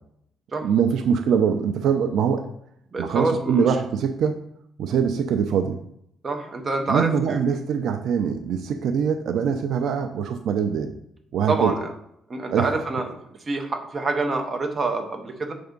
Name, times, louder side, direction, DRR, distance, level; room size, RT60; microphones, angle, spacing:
voice 1, 0.6-2.5 3.0-4.4 4.8-5.8 6.9-10.9 11.3-11.7 12.5-12.8, right 7 dB, 60° right, 7 dB, 0.4 m, -23 dB
voice 2, 2.9-3.7 6.2-7.4 11.5-11.9 12.3-13.1 13.5-15.5, right 3 dB, 25° right, 3 dB, 0.7 m, -26 dB
6.4 x 3.4 x 5.2 m, 0.74 s
cardioid pair, 170°, 0 cm